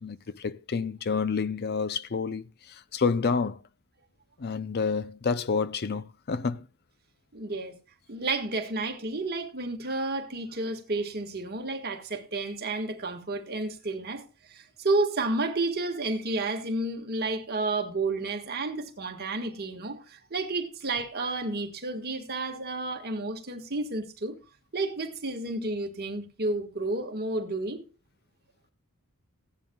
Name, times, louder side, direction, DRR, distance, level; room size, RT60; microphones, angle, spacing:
voice 1, 0.0-3.6 4.4-6.6, left 5 dB, 45° left, 0.5 m, -29 dB
voice 2, 7.3-7.7 8.1-24.4 24.7-27.8, right 2 dB, 45° right, 1.7 m, -31 dB
16.0 x 10.5 x 2.3 m
head